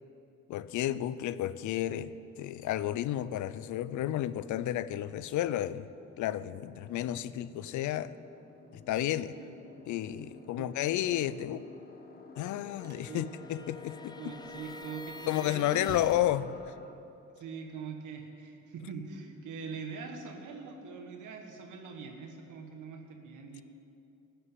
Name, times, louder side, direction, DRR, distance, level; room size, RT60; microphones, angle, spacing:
voice 1, 0.5-5.9 6.2-8.1 8.7-9.3 9.9-11.6 12.4-14.2 15.3-16.7, left 12 dB, 75° left, 16 dB, 0.5 m, -32 dB
sound 1, 2.2-16.9, left 3 dB, 30° left, 1.3 m, -54 dB
sound 2, 12.6-16.3, left 3 dB, 15° left, 0.5 m, -48 dB
sound 3, 12.8-13.1 13.4-13.5 13.7-13.8 14.3-17.3, right 3 dB, 35° right, 1.6 m, -49 dB
voice 2, 14.2-16.1 17.4-23.6, right 5 dB, 80° right, 4 dB, 1.4 m, -43 dB
13.5 x 6.7 x 9.2 m, 2.7 s
cardioid pair, 90°, 30 cm